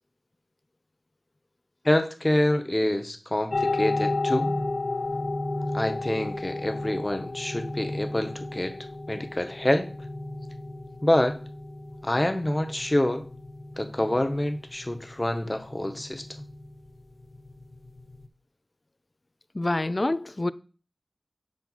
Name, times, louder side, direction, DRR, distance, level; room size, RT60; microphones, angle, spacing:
voice 1, 1.8-4.5 5.7-8.8 9.1-9.9 11.0-11.4 12.0-13.2 13.8-16.2, left 1 dB, 25° left, 0.8 m, -26 dB
sound 1, 3.5-18.3, left 2 dB, 75° left, 0.7 m, -33 dB
voice 2, 19.6-20.5, left 2 dB, 40° left, 0.3 m, -26 dB
6.0 x 4.3 x 4.0 m
wide cardioid pair, 60°, 0 cm